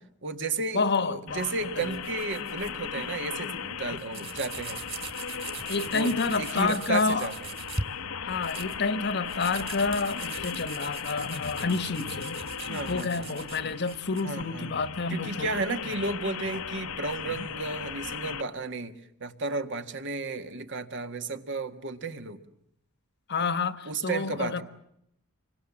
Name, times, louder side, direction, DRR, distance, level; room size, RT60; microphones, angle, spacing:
voice 1, 0.2-4.8 5.9-7.3 12.7-13.3 14.2-14.7 15.1-22.4 23.9-24.6, right 3 dB, 55° right, 1.8 m, -33 dB
voice 2, 0.7-2.0 3.9-4.0 5.7-7.3 8.2-12.3 12.9-15.8 23.3-24.6, left 4 dB, 50° left, 1.3 m, -29 dB
sound 1, 1.3-18.4, left 7 dB, 80° left, 1.1 m, -37 dB
sound 2, 1.8-2.7 3.1-3.3 3.6-3.7 3.9-7.8 8.3-14.2, right 4 dB, 25° right, 2.6 m, -40 dB
28.0 x 24.5 x 7.4 m
head